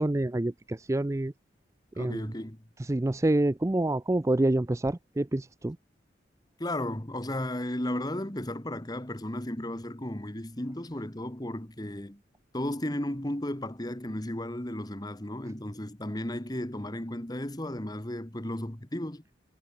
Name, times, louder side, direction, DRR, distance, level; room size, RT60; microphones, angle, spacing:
voice 1, 0.0-1.3 2.0-2.2 2.9-5.8, right 1 dB, 15° right, 0.4 m, -27 dB
voice 2, 1.9-2.6 6.6-12.2 12.5-19.2, left 1 dB, 20° left, 1.6 m, -34 dB
head